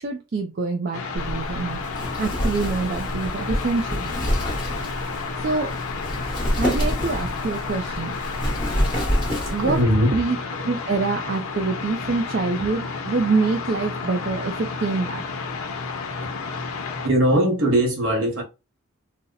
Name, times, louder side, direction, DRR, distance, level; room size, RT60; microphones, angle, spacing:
voice 1, 0.0-1.8 2.2-4.1 5.4-5.7 6.6-8.2 9.5-9.8 10.1-15.2, right 3 dB, 45° right, 0.4 m, -25 dB
sound 1, 0.9-17.1, left 4 dB, 85° left, 0.6 m, -31 dB
Wind, 1.1-9.8, equal, 20° left, 1.1 m, -27 dB
voice 2, 9.6-10.1 17.0-18.4, equal, 65° right, 1.2 m, -20 dB
2.7 x 2.1 x 3.8 m
head